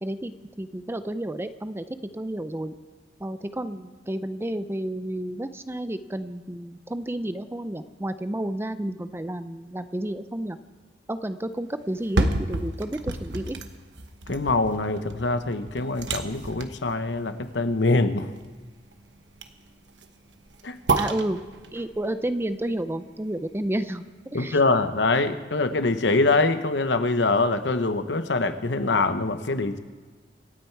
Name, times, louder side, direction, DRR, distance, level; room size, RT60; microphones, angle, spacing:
voice 1, 0.0-0.3 0.6-2.7 3.2-10.6 11.1-13.6 21.0-21.4 21.7-24.0 24.3-24.6, right 1 dB, 15° right, 11 dB, 0.6 m, -31 dB
sound 1, 11.9-23.9 24.3-24.4, right 2 dB, 85° right, 1.1 m, -32 dB
voice 2, 14.3-18.3 20.6-20.8 24.3-29.8, left 3 dB, 80° left, 9 dB, 1.0 m, -24 dB
26.0 x 9.1 x 4.7 m, 1.4 s
head